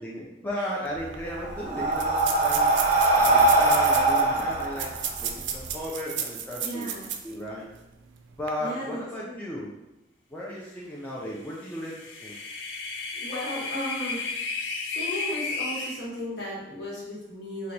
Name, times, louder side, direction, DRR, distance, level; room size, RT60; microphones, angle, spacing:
voice 1, 0.0-2.7 3.2-4.9 5.2-6.9 7.2-7.7 8.4-9.7 10.3-12.4, equal, 10° left, -5 dB, 0.4 m, -35 dB
sound 1, 0.9-1.0 1.1-1.2 1.9-7.4 7.8-7.9 8.3-8.5, right 8 dB, 80° right, 0.3 m, -33 dB
Breathing, 1.0-5.7, right 2 dB, 35° right, 0.7 m, -22 dB
voice 2, 6.6-7.1 8.6-9.5 13.2-14.2 14.9-17.7, equal, 60° left, -6 dB, 1.1 m, -35 dB
sound 2, 11.7-16.0, left 4 dB, 85° left, 0.4 m, -33 dB
2.9 x 2.2 x 3.9 m, 0.93 s
head